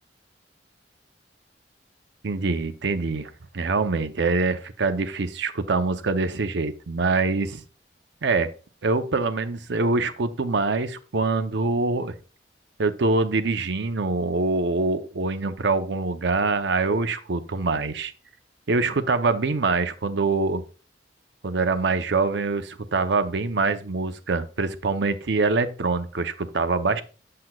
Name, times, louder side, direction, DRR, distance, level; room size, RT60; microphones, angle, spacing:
voice 1, 2.2-7.6 8.2-8.5 8.8-12.1 12.8-18.1 18.7-20.6 21.4-27.0, right 3 dB, 70° right, 10 dB, 0.6 m, -24 dB
7.8 x 7.6 x 2.3 m, 0.36 s
head